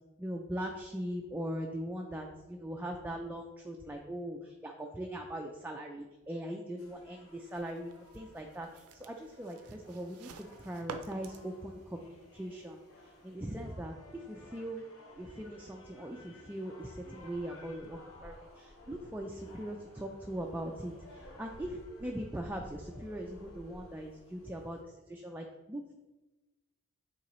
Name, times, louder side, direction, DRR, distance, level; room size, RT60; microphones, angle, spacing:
voice 1, 0.2-14.8 15.2-25.9, right 1 dB, 10° right, 2 dB, 0.3 m, -41 dB
sound 1, 6.8-24.8, left 1 dB, 65° left, 1.2 m, -56 dB
sound 2, 7.5-13.4, right 5 dB, 85° right, 0.5 m, -51 dB
8.4 x 3.8 x 3.1 m, 1.1 s
head